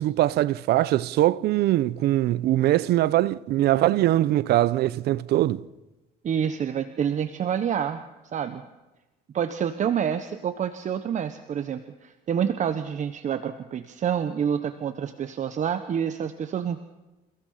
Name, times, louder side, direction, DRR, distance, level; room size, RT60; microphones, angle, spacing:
voice 1, 0.0-5.6, right 14 dB, 75° right, 0.8 m, -22 dB
voice 2, 6.2-8.0 8.3-8.6 9.3-16.8, right 8 dB, 45° right, 1.2 m, -28 dB
29.0 x 17.0 x 5.8 m
cardioid pair, 110°, 17 cm